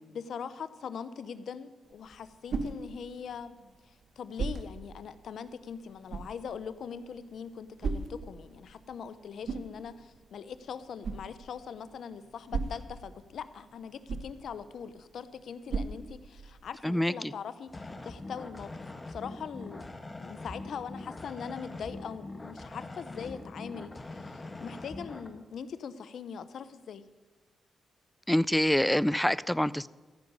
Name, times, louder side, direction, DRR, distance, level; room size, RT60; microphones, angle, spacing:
voice 1, 0.1-3.5 3.8-19.8 20.2-27.1, left 7 dB, 75° left, 14 dB, 0.7 m, -41 dB
sound 1, 1.8-16.7, right 4 dB, 65° right, 1.0 m, -40 dB
voice 2, 16.8-17.3 28.3-29.9, left 1 dB, 5° left, 20 dB, 0.4 m, -26 dB
sound 2, 17.7-25.3, left 2 dB, 25° left, 1.5 m, -43 dB
15.0 x 5.3 x 9.5 m, 1.3 s
cardioid pair, 65°, 0 cm